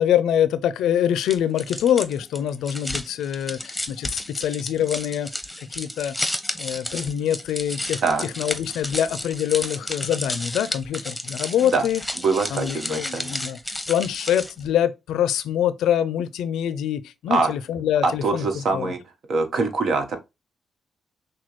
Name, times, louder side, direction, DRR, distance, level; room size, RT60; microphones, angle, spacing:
voice 1, 0.0-5.3 5.6-6.2 6.6-8.0 8.4-12.0 12.5-13.6 13.9-18.9, left 10 dB, 80° left, 0.4 m, -24 dB
sound 1, 1.2-14.7, left 1 dB, 10° left, 0.9 m, -32 dB
voice 2, 12.2-13.3 17.3-17.5 18.0-19.0 19.3-20.2, right 4 dB, 65° right, 1.1 m, -23 dB
6.1 x 2.3 x 3.0 m
supercardioid pair, 55°, 0 cm